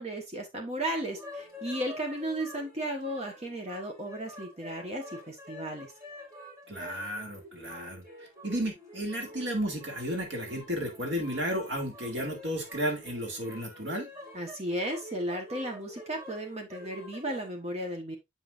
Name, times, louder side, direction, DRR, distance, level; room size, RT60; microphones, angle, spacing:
voice 1, 0.0-5.9 14.3-18.2, right 1 dB, 35° right, 1.2 m, -35 dB
sound 1, 1.0-17.5, equal, 15° right, 2.4 m, -47 dB
voice 2, 6.7-14.1, equal, 65° right, 2.2 m, -33 dB
6.8 x 6.2 x 2.5 m
head